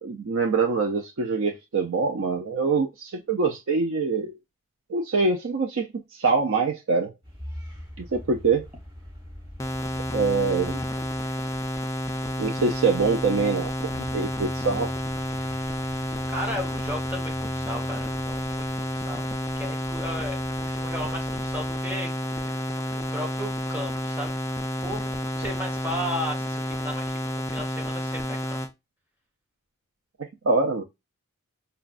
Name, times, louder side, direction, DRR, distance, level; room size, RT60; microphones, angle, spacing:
voice 1, 0.0-4.4 4.9-7.1 8.0-8.7 9.9-10.8 12.4-13.7 14.0-14.9 30.4-30.8, right 4 dB, 65° right, 0.4 m, -24 dB
sound 1, 7.2-21.8, left 1 dB, 25° right, 2.4 m, -43 dB
sound 2, 9.6-28.7, equal, 15° left, 0.3 m, -30 dB
voice 2, 16.0-18.7 18.9-22.6 22.9-24.4 24.8-28.6, equal, 10° right, 0.8 m, -35 dB
4.9 x 2.2 x 2.4 m
head